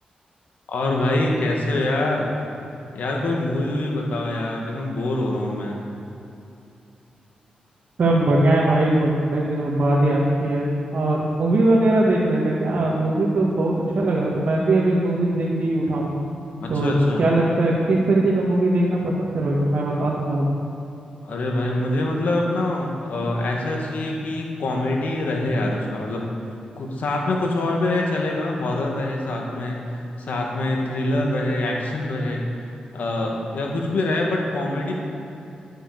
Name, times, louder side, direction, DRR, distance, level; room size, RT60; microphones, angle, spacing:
voice 1, 0.7-2.3 2.9-5.8 16.6-17.2 21.2-26.2 26.7-34.9, left 2 dB, 75° left, -1 dB, 2.0 m, -25 dB
voice 2, 8.0-16.1 16.7-20.5, right 1 dB, 65° right, -5 dB, 2.0 m, -20 dB
13.0 x 7.7 x 6.6 m, 2.7 s
cardioid pair, 70°, 3 cm